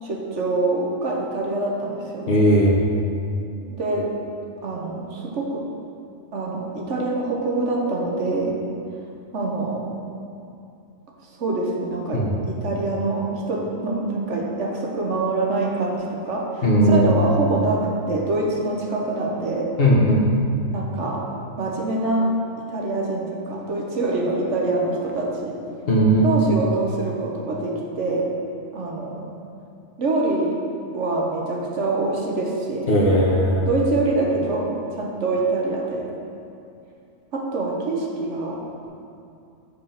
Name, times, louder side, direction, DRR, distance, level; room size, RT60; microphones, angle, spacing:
voice 1, 0.0-2.3 3.7-4.1 4.6-5.7 6.3-8.6 9.3-9.9 11.4-19.7 20.7-21.2 21.6-25.6 26.2-28.3 28.7-29.3 30.0-30.6 30.9-32.9 33.7-36.1 37.3-38.7, right 2 dB, 70° right, -1 dB, 1.4 m, -25 dB
voice 2, 2.3-2.8 12.1-12.3 16.6-17.1 19.8-20.3 25.9-26.4 32.9-33.7, equal, 50° left, -4 dB, 1.5 m, -17 dB
7.3 x 4.9 x 5.8 m, 2.6 s
omnidirectional pair, 1.3 m